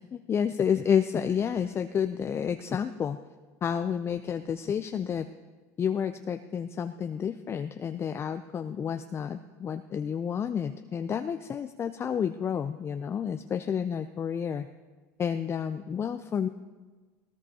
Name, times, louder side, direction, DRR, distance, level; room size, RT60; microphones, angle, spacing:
voice 1, 0.1-3.2 3.6-5.3 5.8-14.7 15.2-16.5, left 7 dB, 30° left, 8 dB, 0.5 m, -30 dB
18.5 x 17.5 x 2.9 m, 1.3 s
hypercardioid pair, 95°, 9 cm